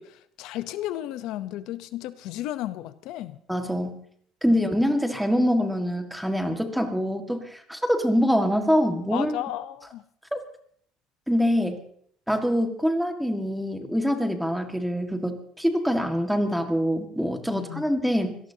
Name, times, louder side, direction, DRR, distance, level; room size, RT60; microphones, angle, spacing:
voice 1, 0.0-3.4 4.5-4.6 9.0-10.0 17.5-17.9, left 13 dB, 70° left, 12 dB, 0.8 m, -34 dB
voice 2, 3.5-4.0 4.4-9.3 10.3-10.4 11.3-11.8 12.3-18.4, equal, ahead, 5 dB, 1.8 m, -24 dB
26.0 x 18.0 x 2.9 m, 0.64 s
cardioid pair, 145°, 0 cm